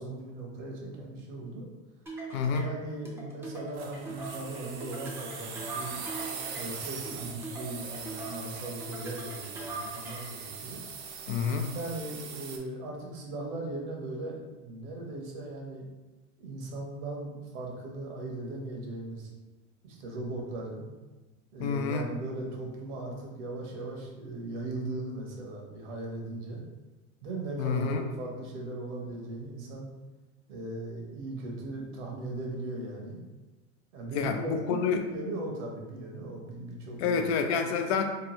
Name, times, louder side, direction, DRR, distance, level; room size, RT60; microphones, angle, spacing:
voice 1, 0.0-1.7 2.6-6.0 6.5-10.8 11.7-15.9 16.4-19.3 19.8-20.9 21.5-26.6 27.2-29.9 30.5-33.2 33.9-37.3, right 2 dB, 70° right, 0 dB, 1.0 m, -38 dB
sound 1, 2.1-10.4, right 2 dB, 5° right, 0.5 m, -42 dB
voice 2, 2.3-2.7 11.3-11.7 21.6-22.0 27.6-28.0 34.1-35.0 37.0-38.0, left 6 dB, 60° left, 6 dB, 0.5 m, -28 dB
sound 2, 3.7-12.6, right 6 dB, 55° right, 0.6 m, -41 dB
2.9 x 2.2 x 3.0 m, 1.2 s
supercardioid pair, 110°, 37 cm